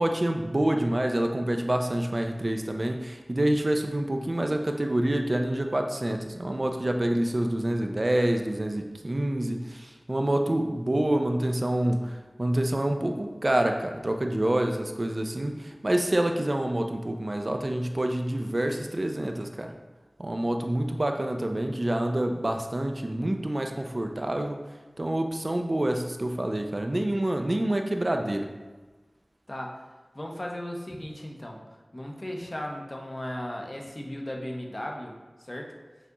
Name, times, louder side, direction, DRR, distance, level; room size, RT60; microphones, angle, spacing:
voice 1, 0.0-19.7 20.2-24.6 25.0-28.5, right 1 dB, 45° right, 4 dB, 0.3 m, -27 dB
voice 2, 30.1-31.6 31.9-35.8, left 1 dB, 35° left, 0 dB, 0.6 m, -36 dB
6.0 x 2.8 x 2.3 m, 1.2 s
wide cardioid pair, 55°, 0 cm